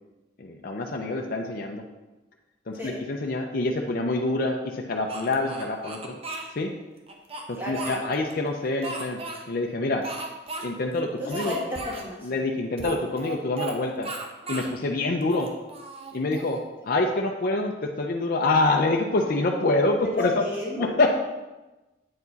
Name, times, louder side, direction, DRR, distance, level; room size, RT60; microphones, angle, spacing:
voice 1, 0.4-1.8 2.7-6.2 6.5-6.7 7.5-9.2 9.5-10.0 10.6-11.6 12.2-14.1 14.5-15.5 16.1-16.6 16.9-20.3 20.6-21.1, left 2 dB, 50° left, 1 dB, 0.5 m, -26 dB
Speech, 5.1-6.5 7.1-8.3 8.8-9.4 10.0-10.6 10.9-11.0 11.3-12.1 12.8-13.8 14.0-14.7 15.2-16.6, right 2 dB, 30° right, 0.8 m, -36 dB
voice 2, 7.6-8.0 11.2-12.2 20.1-20.9, left 2 dB, 10° right, -5 dB, 1.8 m, -33 dB
8.5 x 4.7 x 4.0 m, 1.1 s
head